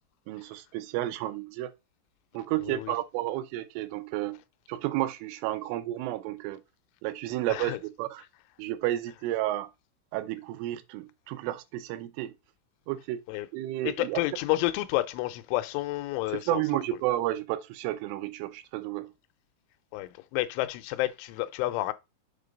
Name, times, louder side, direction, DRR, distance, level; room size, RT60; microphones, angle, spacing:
voice 1, 0.3-1.7 2.3-4.4 4.7-6.6 7.0-8.2 8.6-9.7 10.1-12.3 12.9-13.2 13.5-14.2 16.3-19.1, right 15 dB, 90° right, 3.3 m, -31 dB
voice 2, 7.5-7.8 13.3-13.5 13.8-16.6 19.9-21.9, left 16 dB, 85° left, 3.2 m, -30 dB
7.4 x 3.9 x 5.2 m
omnidirectional pair, 5.5 m